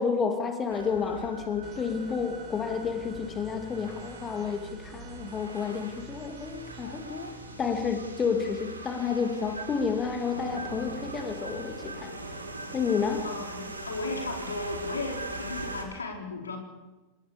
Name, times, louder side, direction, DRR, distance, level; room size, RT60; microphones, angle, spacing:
voice 1, 0.0-7.3 7.6-12.1 12.7-13.3, left 6 dB, 20° left, 5 dB, 2.5 m, -30 dB
sound 1, 0.7-15.8, right 2 dB, 80° right, 4.0 m, -41 dB
sound 2, 1.6-11.3, right 3 dB, 30° right, 2.9 m, -51 dB
voice 2, 13.2-16.6, left 3 dB, 75° left, 2 dB, 4.3 m, -35 dB
27.5 x 19.5 x 7.1 m, 1.1 s
figure-of-eight pair, 90°, 0 cm